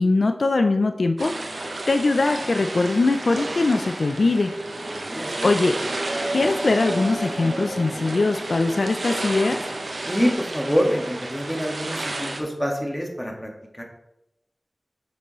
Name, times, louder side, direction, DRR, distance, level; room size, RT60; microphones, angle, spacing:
voice 1, 0.0-4.5 5.4-5.8 6.3-9.6, left 3 dB, 75° left, 7 dB, 0.4 m, -21 dB
sound 1, 1.2-10.5, right 1 dB, 50° right, 0.8 m, -35 dB
sound 2, 1.2-12.4, right 2 dB, 85° right, 0.9 m, -32 dB
voice 2, 4.9-5.5 10.1-13.5 13.8-13.9, equal, 10° left, 0 dB, 1.6 m, -26 dB
6.9 x 6.1 x 3.1 m, 0.87 s
wide cardioid pair, 45°, 0 cm